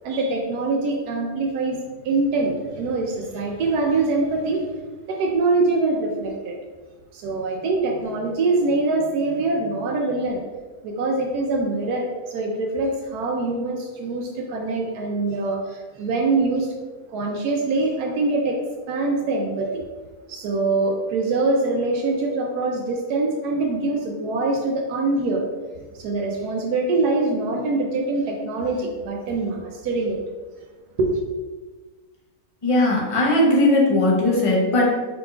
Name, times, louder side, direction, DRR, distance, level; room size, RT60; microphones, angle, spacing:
voice 1, 0.0-1.8 2.0-4.6 5.1-6.6 7.1-10.4 10.8-16.7 17.1-18.6 18.9-19.8 20.3-25.4 25.9-30.2 31.0-31.2, right 3 dB, 80° right, 1 dB, 1.1 m, -24 dB
voice 2, 32.6-34.9, left 1 dB, 30° left, -4 dB, 0.6 m, -18 dB
4.7 x 3.8 x 2.3 m, 1.3 s
omnidirectional pair, 1.6 m